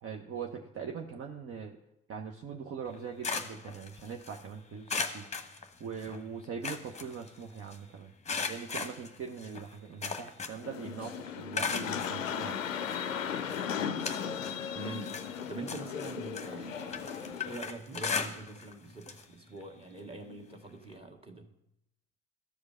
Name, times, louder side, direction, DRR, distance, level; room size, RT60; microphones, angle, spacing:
voice 1, 0.0-1.8 2.1-5.2 5.8-8.1 8.5-12.6, right 6 dB, 35° right, 2 dB, 0.9 m, -41 dB
sound 1, 2.9-4.4 4.9-6.2 6.4-7.8 8.3-10.8 11.0-12.2 12.9-13.0 13.5-14.6 14.9-18.7 19.0-19.2 19.6-19.7 20.9-21.0, left 5 dB, 15° left, 1.1 m, -37 dB
sound 2, 10.6-17.6, left 7 dB, 85° left, 0.6 m, -36 dB
voice 2, 14.7-15.2 15.5-21.5, right 2 dB, 15° right, 2 dB, 1.8 m, -44 dB
13.5 x 5.0 x 5.5 m, 0.84 s
figure-of-eight pair, 55°, 38 cm